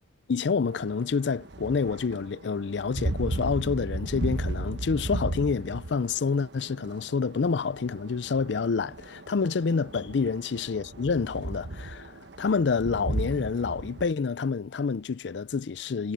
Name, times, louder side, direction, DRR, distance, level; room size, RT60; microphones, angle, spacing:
voice 1, 0.3-16.1, left 5 dB, 75° left, 0.5 m, -28 dB
sound 1, 0.7-14.1, right 1 dB, 70° right, 1.2 m, -35 dB
head